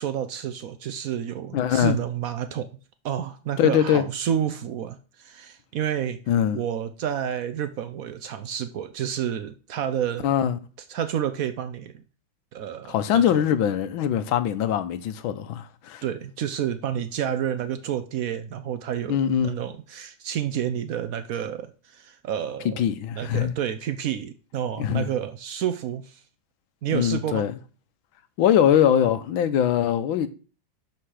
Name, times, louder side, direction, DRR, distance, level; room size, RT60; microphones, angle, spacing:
voice 1, 0.0-2.7 3.0-6.2 6.5-10.3 10.9-12.0 12.5-13.4 16.0-22.8 23.2-26.2 26.8-27.4, right 9 dB, 75° right, 0.8 m, -30 dB
voice 2, 1.5-2.0 3.6-4.1 6.3-6.6 10.2-10.6 12.9-16.0 19.1-19.6 22.6-23.5 24.8-25.1 26.9-27.5 28.4-30.3, left 9 dB, 80° left, 1.5 m, -22 dB
11.5 x 4.5 x 4.8 m
omnidirectional pair, 2.2 m